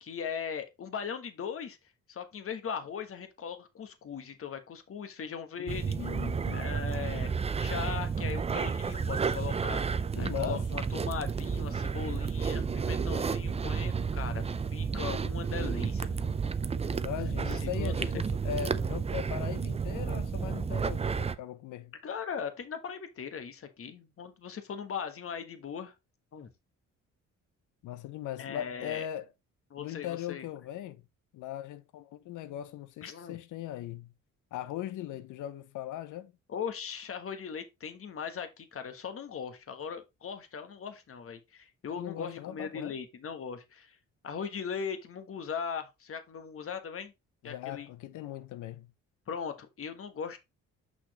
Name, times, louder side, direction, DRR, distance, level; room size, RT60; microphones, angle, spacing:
voice 1, 0.0-1.8 2.1-6.1 6.5-7.3 7.6-16.4 17.5-17.9 22.0-25.9 26.3-26.5 28.4-29.1 29.7-30.4 33.0-33.4 36.5-44.0 44.2-47.1 47.4-47.9 49.3-50.4, left 6 dB, 45° left, 1.4 m, -39 dB
voice 2, 5.6-6.7 10.1-10.8 17.0-21.9 27.8-29.3 29.8-31.0 31.3-34.1 34.5-36.3 42.0-43.0 47.4-48.9, left 11 dB, 80° left, 0.7 m, -39 dB
sound 1, 5.7-21.4, right 5 dB, 20° right, 0.5 m, -31 dB
6.5 x 5.8 x 3.0 m
cardioid pair, 90°, 30 cm